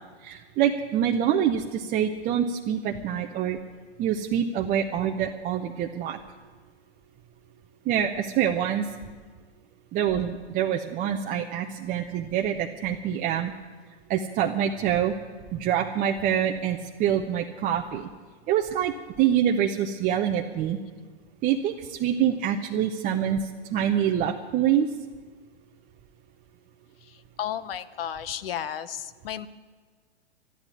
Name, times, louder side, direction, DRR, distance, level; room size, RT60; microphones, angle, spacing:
voice 1, 0.2-3.6 4.0-6.2 7.9-8.8 9.9-13.5 14.1-15.1 15.5-18.1 18.5-18.9 19.2-20.8 21.4-23.4 23.7-24.9, right 9 dB, 25° right, 2 dB, 0.8 m, -25 dB
voice 2, 27.0-29.5, left 10 dB, 55° left, 14 dB, 1.0 m, -33 dB
12.5 x 11.5 x 9.9 m, 1.5 s
hypercardioid pair, 115°, 34 cm